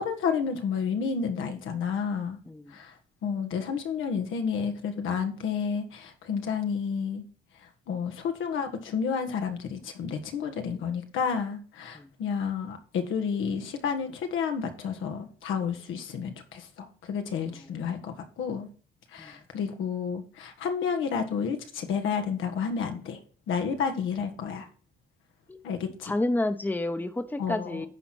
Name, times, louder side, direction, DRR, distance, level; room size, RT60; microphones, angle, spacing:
voice 1, 0.0-2.4 2.7-2.9 3.2-7.2 7.6-18.7 19.1-23.2 23.5-24.7 25.6-26.1 27.4-27.8, left 6 dB, 80° left, 6 dB, 1.5 m, -31 dB
voice 2, 26.0-27.9, left 2 dB, 10° left, 9 dB, 0.9 m, -30 dB
11.0 x 4.4 x 6.2 m, 0.40 s
cardioid pair, 90°, 20 cm